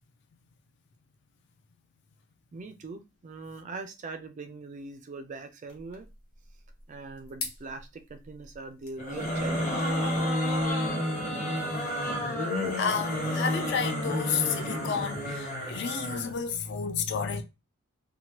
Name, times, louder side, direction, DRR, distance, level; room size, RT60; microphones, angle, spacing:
voice 1, 2.5-6.1 6.9-9.9, right 3 dB, 35° right, 0.3 m, -41 dB
sound 1, 5.7-10.7, left 3 dB, 90° left, 1.0 m, -46 dB
sound 2, 9.0-16.3, equal, 35° left, 1.0 m, -30 dB
voice 2, 12.7-17.4, left 6 dB, 50° left, 0.4 m, -31 dB
3.0 x 2.1 x 2.9 m
head